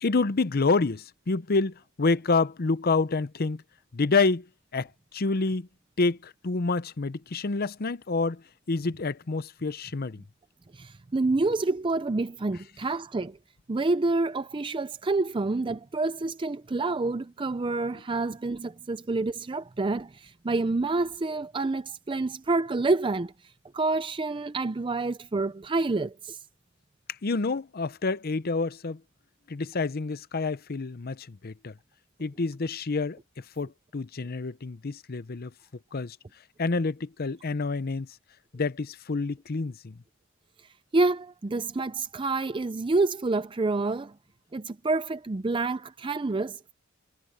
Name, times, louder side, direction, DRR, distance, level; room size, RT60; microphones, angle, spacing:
voice 1, 0.0-3.6 3.9-5.7 6.0-10.2 27.1-29.0 29.5-31.7 32.2-35.5 35.9-36.2 36.6-38.2 38.5-40.0, left 3 dB, 50° left, 0.7 m, -28 dB
voice 2, 10.7-13.4 13.7-23.3 23.7-26.4 40.9-44.1 44.5-46.7, right 3 dB, 25° right, 0.5 m, -28 dB
head